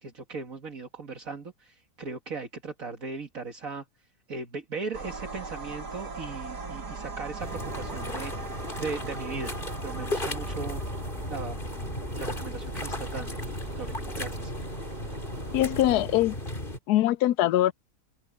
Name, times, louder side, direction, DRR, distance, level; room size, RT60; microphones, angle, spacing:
voice 1, 0.0-3.8 4.3-9.6 9.8-10.8 11.3-11.7 12.1-14.5, right 4 dB, 60° right, 2.2 m, -38 dB
sound 1, 4.9-16.0, right 3 dB, 90° right, 3.0 m, -40 dB
sound 2, 7.4-16.8, left 1 dB, 30° left, 4.5 m, -35 dB
voice 2, 15.5-16.4 16.9-17.7, left 14 dB, 80° left, 1.1 m, -22 dB
omnidirectional pair, 1.7 m